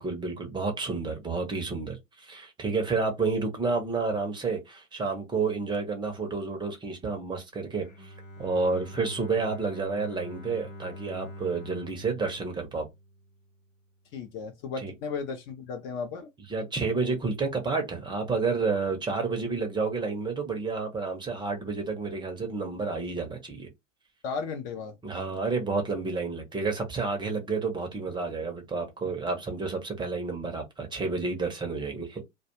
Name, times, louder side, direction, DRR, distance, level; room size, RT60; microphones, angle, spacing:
voice 1, 0.0-8.1 8.4-12.9 14.8-14.9 16.5-23.7 25.0-32.2, right 4 dB, 10° right, 0.6 m, -30 dB
Bowed string instrument, 7.7-13.7, equal, 85° left, 1.0 m, -44 dB
voice 2, 14.1-16.3 24.2-25.0, left 5 dB, 30° left, 0.5 m, -35 dB
2.3 x 2.2 x 2.8 m
hypercardioid pair, 95°, 38 cm